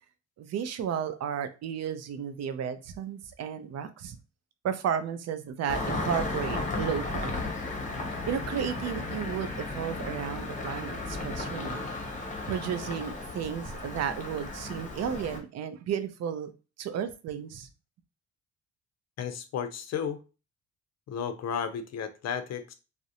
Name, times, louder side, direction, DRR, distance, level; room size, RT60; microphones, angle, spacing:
voice 1, 0.4-4.2 4.6-7.5 8.3-11.9 12.5-16.5 16.8-17.7, right 8 dB, 60° right, 0.5 m, -33 dB
Engine starting, 5.7-15.4, left 2 dB, 25° left, 0.7 m, -34 dB
voice 2, 19.2-20.2 21.1-22.7, left 7 dB, 60° left, 0.5 m, -33 dB
2.5 x 2.0 x 2.7 m
cardioid pair, 90°, 30 cm